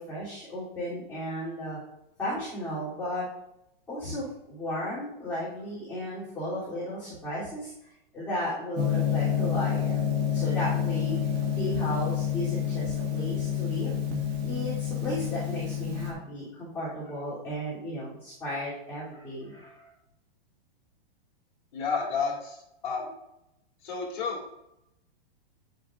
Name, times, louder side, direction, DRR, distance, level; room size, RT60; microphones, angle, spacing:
voice 1, 0.0-1.8 2.2-3.3 3.9-7.7 8.1-10.0 10.3-11.2 11.6-13.9 14.4-19.9, equal, 10° left, -12 dB, 3.1 m, -34 dB
Gong, 8.8-16.1, left 8 dB, 30° right, 1.7 m, -28 dB
voice 2, 21.7-22.6 22.8-23.1 23.8-24.4, left 5 dB, 50° left, -1 dB, 2.5 m, -30 dB
9.9 x 6.9 x 2.5 m, 0.84 s
hypercardioid pair, 160°, 29 cm